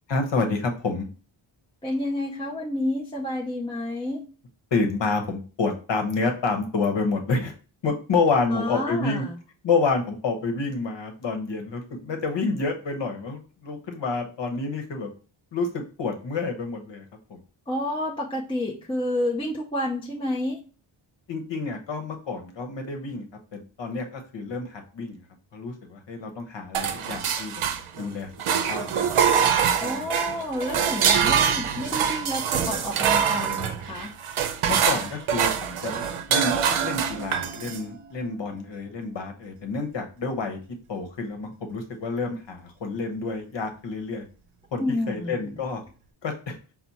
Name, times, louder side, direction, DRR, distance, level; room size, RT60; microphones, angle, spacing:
voice 1, 0.1-1.1 4.7-7.5 7.8-9.3 9.6-15.1 15.5-17.0 17.3-17.4 21.3-23.3 23.5-25.2 25.5-27.6 28.0-28.3 28.6-29.0 29.8-30.4 34.7-40.6 40.9-44.2 44.7-45.8 46.2-46.6, left 4 dB, 60° left, 4 dB, 1.0 m, -28 dB
voice 2, 1.8-4.3 8.4-9.4 17.7-20.6 29.8-34.1 44.8-45.5, left 1 dB, 10° left, -3 dB, 0.5 m, -29 dB
sound 1, 26.7-28.1 28.4-37.8, right 7 dB, 85° right, 0.7 m, -24 dB
5.9 x 2.1 x 4.1 m, 0.37 s
wide cardioid pair, 170°, 49 cm